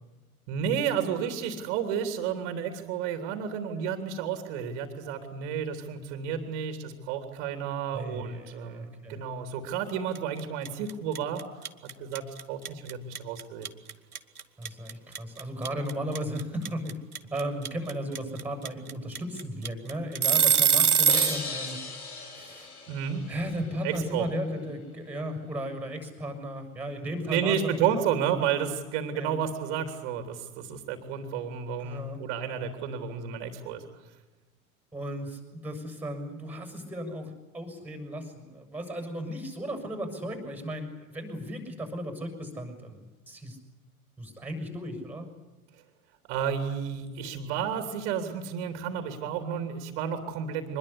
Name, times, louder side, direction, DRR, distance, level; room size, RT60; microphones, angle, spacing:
voice 1, 0.5-11.4 11.8-13.7 22.9-23.2 23.8-24.3 27.3-33.8 46.3-50.8, right 8 dB, 45° right, 6 dB, 3.3 m, -31 dB
voice 2, 7.9-9.2 14.6-17.0 17.3-21.8 22.3-22.7 23.3-27.8 29.1-29.3 31.8-32.2 34.9-43.0 43.3-43.6 44.2-45.3, equal, 5° right, 6 dB, 6.7 m, -35 dB
sound 1, 10.1-10.4 10.6-21.4, right 7 dB, 80° right, 1.3 m, -23 dB
sound 2, 21.1-23.8, left 4 dB, 75° left, 3.9 m, -38 dB
24.5 x 21.0 x 8.4 m, 1.2 s
figure-of-eight pair, 90°, 44 cm